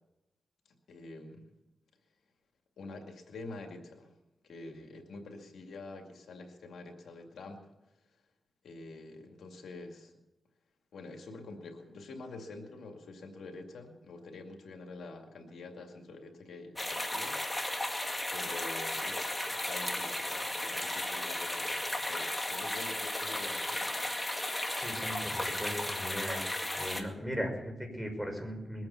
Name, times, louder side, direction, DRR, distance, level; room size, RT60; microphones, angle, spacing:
voice 1, 0.9-1.5 2.8-4.1 4.4-7.7 8.6-10.1 10.9-17.8 18.3-24.1, left 3 dB, 85° left, 3 dB, 2.2 m, -47 dB
sound 1, 16.8-27.0, left 1 dB, 15° left, 2.1 m, -35 dB
voice 2, 24.7-26.4 26.8-28.9, equal, 5° right, 2 dB, 5.7 m, -38 dB
22.0 x 8.9 x 7.0 m, 0.95 s
cardioid pair, 70°, 0 cm